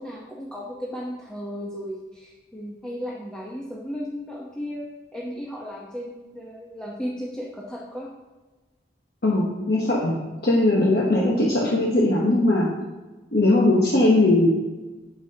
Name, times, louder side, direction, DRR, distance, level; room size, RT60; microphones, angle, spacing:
voice 1, 0.0-8.1, equal, 5° left, -6 dB, 0.9 m, -35 dB
voice 2, 9.2-10.2 10.4-12.7 13.3-14.5, left 2 dB, 65° left, -4 dB, 1.1 m, -19 dB
10.0 x 7.2 x 2.9 m, 1.2 s
head